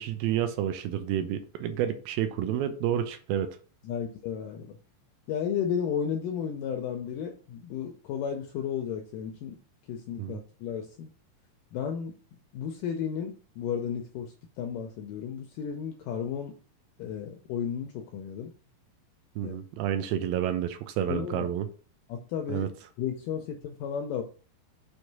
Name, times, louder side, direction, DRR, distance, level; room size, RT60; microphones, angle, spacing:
voice 1, 0.0-3.6 10.2-10.4 19.4-21.7 22.5-22.7, right 10 dB, 80° right, 2.2 m, -30 dB
voice 2, 3.8-4.7 5.3-9.6 9.9-11.1 11.7-12.2 12.5-16.6 17.0-18.5 19.4-19.6 21.1-21.6 22.1-22.7 23.0-24.2, left 8 dB, 85° left, 1.9 m, -33 dB
6.4 x 3.3 x 5.8 m
omnidirectional pair, 4.5 m